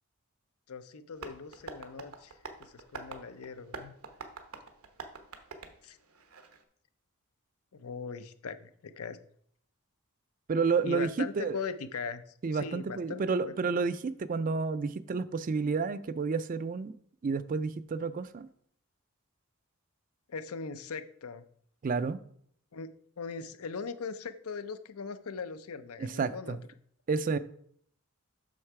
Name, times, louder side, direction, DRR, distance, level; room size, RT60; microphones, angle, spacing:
voice 1, 0.7-2.3 2.6-3.9 5.8-6.0 7.7-9.2 10.8-12.2 12.5-13.5 20.3-21.4 22.7-22.9 23.2-26.6, left 5 dB, 80° left, 0.6 m, -40 dB
Tap, 1.1-6.6, right 4 dB, 85° right, 1.0 m, -46 dB
voice 2, 10.5-11.6 12.4-16.9 17.2-18.5 21.8-22.2 26.0-26.6 27.1-27.4, right 4 dB, 40° right, 0.4 m, -30 dB
6.5 x 6.4 x 4.7 m
head